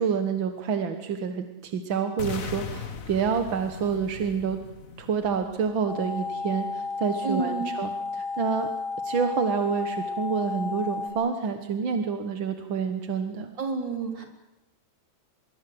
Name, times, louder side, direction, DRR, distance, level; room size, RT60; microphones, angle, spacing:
voice 1, 0.0-4.6 5.0-8.7 9.0-13.5, right 6 dB, 50° right, 7 dB, 1.6 m, -28 dB
sound 1, 2.2-6.2, left 7 dB, 65° left, 0.8 m, -39 dB
sound 2, 5.9-11.1, left 4 dB, 80° left, 5.6 m, -32 dB
voice 2, 7.2-7.7 13.6-14.2, right 4 dB, 35° right, 3 dB, 4.5 m, -29 dB
24.5 x 22.0 x 7.8 m, 1.0 s
omnidirectional pair, 3.5 m